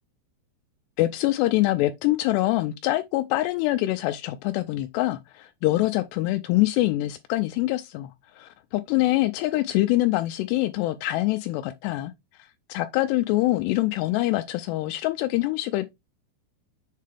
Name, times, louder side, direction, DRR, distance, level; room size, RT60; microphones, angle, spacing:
voice 1, 1.0-8.1 8.4-12.1 12.7-15.9, left 17 dB, 90° left, 2.4 m, -24 dB
7.6 x 3.7 x 3.3 m
omnidirectional pair, 5.4 m